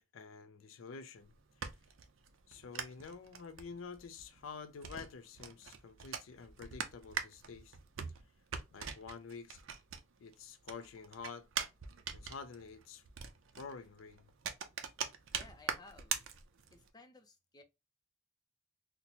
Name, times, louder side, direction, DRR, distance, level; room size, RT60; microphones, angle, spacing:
voice 1, 0.0-1.3 2.5-7.8 8.7-9.6 10.2-11.5 12.1-13.0 13.6-14.3, left 5 dB, 80° left, 0.4 m, -49 dB
sound 1, 1.2-10.3 10.6-16.9, right 7 dB, 75° right, 0.5 m, -43 dB
voice 2, 15.3-16.2 16.7-17.6, left 2 dB, 20° left, 0.5 m, -57 dB
4.0 x 2.1 x 2.8 m
head